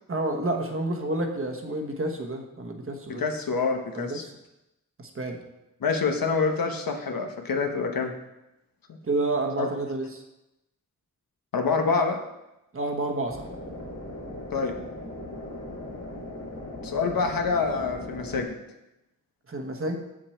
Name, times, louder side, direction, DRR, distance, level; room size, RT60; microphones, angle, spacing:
voice 1, 0.1-3.2 3.9-4.3 5.0-5.4 9.0-10.2 12.7-13.5 19.5-20.0, right 2 dB, 40° right, 3 dB, 1.2 m, -29 dB
voice 2, 3.1-4.2 5.8-8.1 9.6-9.7 11.5-12.2 14.5-14.7 16.8-18.5, left 4 dB, 85° left, 4 dB, 1.2 m, -26 dB
sound 1, 13.3-18.4, left 1 dB, 50° left, 2.4 m, -38 dB
7.8 x 7.5 x 4.4 m, 0.91 s
wide cardioid pair, 155°, 34 cm